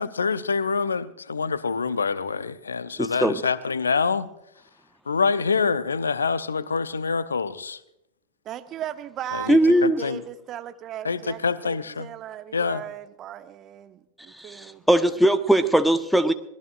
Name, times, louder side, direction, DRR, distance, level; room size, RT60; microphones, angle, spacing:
voice 1, 0.0-4.3 5.1-7.8 9.3-10.2 11.0-12.1 12.5-12.8, left 5 dB, 75° left, 0.7 m, -26 dB
voice 2, 3.0-3.5 9.5-10.0 14.4-16.3, right 1 dB, ahead, 1.0 m, -20 dB
voice 3, 8.4-14.8, right 11 dB, 30° right, 1.1 m, -37 dB
26.0 x 19.0 x 2.5 m
figure-of-eight pair, 90°, 0 cm